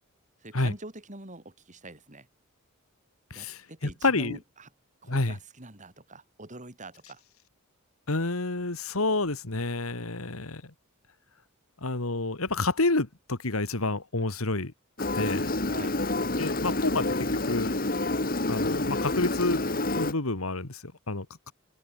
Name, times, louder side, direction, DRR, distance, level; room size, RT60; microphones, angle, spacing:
voice 1, 0.4-2.3 3.3-4.7 5.0-7.2 15.6-16.0, right 2 dB, 35° right, 4.5 m, -45 dB
voice 2, 3.3-3.6 4.0-4.4 5.1-5.4 8.1-10.6 11.8-14.7 15.1-15.6 16.4-17.7 18.5-19.6 20.0-21.5, left 2 dB, 75° left, 2.1 m, -29 dB
Engine, 15.0-20.1, left 2 dB, 40° left, 3.2 m, -28 dB
open air
head